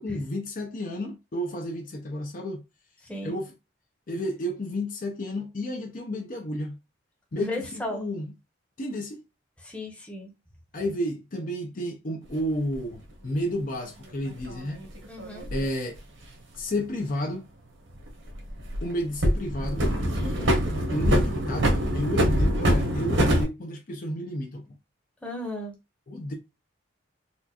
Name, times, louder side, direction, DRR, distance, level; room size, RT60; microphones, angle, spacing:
voice 1, 0.0-2.6 3.2-3.5 4.1-6.8 7.3-8.3 8.8-9.2 10.7-14.8 15.5-16.0 16.6-17.5 18.8-19.9 20.9-24.6 26.1-26.3, equal, 45° left, 0.5 m, -31 dB
voice 2, 3.0-3.4 7.3-8.0 9.6-10.3 15.1-15.5 20.2-20.6 25.2-25.8, left 1 dB, 5° left, 0.8 m, -35 dB
sound 1, 12.7-12.8 14.4-15.7 17.9-18.9 19.2-23.4, equal, 75° right, 1.0 m, -24 dB
4.2 x 2.4 x 2.8 m
head